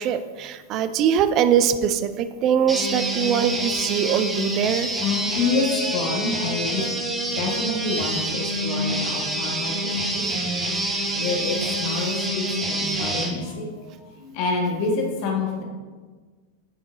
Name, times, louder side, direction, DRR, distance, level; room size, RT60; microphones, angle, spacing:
voice 1, 0.0-4.9, right 8 dB, 35° right, 11 dB, 0.4 m, -22 dB
sound 1, 2.7-13.3, right 1 dB, 15° right, 1.1 m, -27 dB
voice 2, 5.0-6.8 7.3-10.2 11.1-13.6 14.3-15.6, left 3 dB, 45° left, 0 dB, 1.4 m, -27 dB
7.9 x 5.2 x 3.8 m, 1.4 s
figure-of-eight pair, 90°, 0 cm